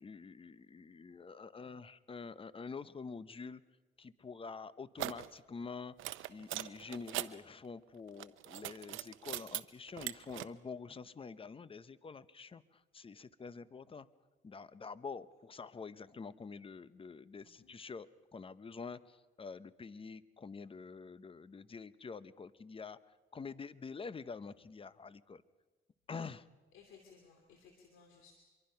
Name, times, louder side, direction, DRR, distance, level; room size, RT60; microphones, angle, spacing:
voice 1, 0.0-3.6 4.0-5.9 6.3-14.1 14.4-23.0 23.3-25.4 26.1-26.5, left 5 dB, 25° left, 16 dB, 0.8 m, -47 dB
sound 1, 5.0-5.3 6.0-7.3 8.1-9.6 9.9-10.4, right 14 dB, 80° right, 0.7 m, -40 dB
voice 2, 17.4-17.7 26.7-28.3, left 6 dB, 85° left, 2 dB, 2.5 m, -60 dB
24.5 x 23.0 x 5.7 m, 1.3 s
cardioid pair, 90°, 20 cm